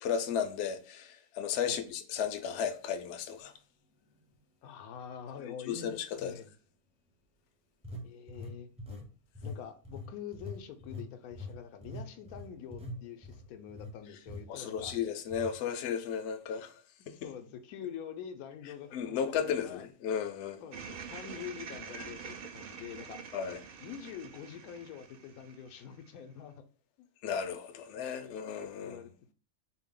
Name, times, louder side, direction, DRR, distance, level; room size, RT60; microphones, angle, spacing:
voice 1, 0.0-3.5 5.4-6.3 14.5-16.7 17.1-17.2 18.9-20.6 21.9-22.1 23.3-23.6 27.2-29.0, left 7 dB, 65° left, 0.7 m, -34 dB
sound 1, 3.4-3.5 4.1-4.3 7.8-9.1 9.3-9.6 9.8-13.9 14.3-14.4 14.8-15.0 15.3-15.5, left 2 dB, 5° right, 0.5 m, -43 dB
voice 2, 4.6-6.5 8.0-8.7 9.4-14.9 17.1-19.8 20.6-23.2 23.8-26.6 27.0-27.1 28.2-28.4 28.8-29.3, left 8 dB, 85° left, 1.0 m, -45 dB
sound 2, 20.7-26.1, right 6 dB, 65° right, 0.5 m, -46 dB
4.4 x 2.1 x 3.6 m
omnidirectional pair, 1.5 m